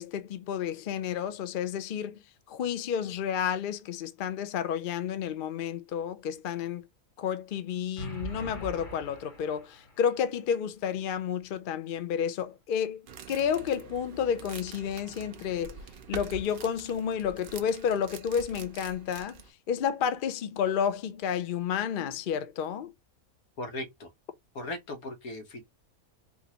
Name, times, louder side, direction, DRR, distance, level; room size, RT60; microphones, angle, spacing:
voice 1, 0.0-2.2 2.5-6.8 7.2-15.8 16.1-19.4 19.7-22.9, left 8 dB, 55° left, 0.6 m, -31 dB
sound 1, 8.0-10.0, right 1 dB, 35° left, 1.2 m, -41 dB
sound 2, 13.1-19.5, right 6 dB, 60° right, 0.6 m, -45 dB
voice 2, 23.6-24.1 24.5-25.6, left 2 dB, 90° left, 1.5 m, -37 dB
3.8 x 2.5 x 2.7 m
omnidirectional pair, 1.5 m